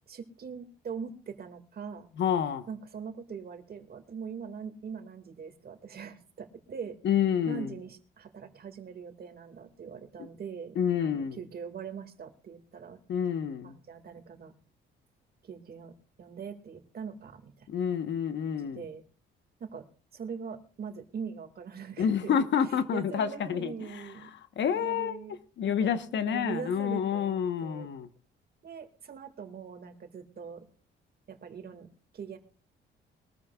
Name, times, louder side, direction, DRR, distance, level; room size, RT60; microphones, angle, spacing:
voice 1, 0.1-2.1 2.7-7.0 7.5-13.0 13.6-14.5 15.4-17.7 18.4-19.0 19.6-19.9 20.1-22.5 22.9-24.3 24.7-25.4 25.6-25.9 26.2-27.9 28.6-30.7 31.3-31.9 32.1-32.4, right 6 dB, 50° right, 2.0 m, -42 dB
voice 2, 2.2-2.6 7.0-7.7 10.2-10.3 10.8-11.4 13.1-13.8 17.7-18.8 22.0-24.3 24.6-25.3 25.6-28.1, left 8 dB, 65° left, 1.1 m, -29 dB
22.5 x 13.5 x 2.4 m
cardioid pair, 90°, 20 cm